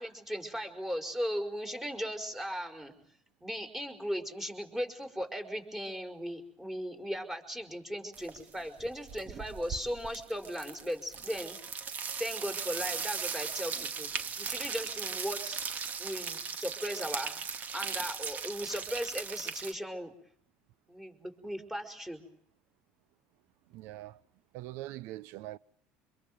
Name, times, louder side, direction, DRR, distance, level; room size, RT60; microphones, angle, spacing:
voice 1, 0.0-2.9 3.4-11.6 12.2-15.6 16.0-17.5 17.7-20.1 20.9-22.3, equal, 10° right, 5.7 m, -37 dB
sound 1, 8.1-8.5 8.8-19.7, right 6 dB, 40° right, 2.4 m, -38 dB
voice 2, 23.7-24.2 24.5-25.6, right 15 dB, 70° right, 1.0 m, -42 dB
26.0 x 22.5 x 7.9 m
supercardioid pair, 100°, 4 cm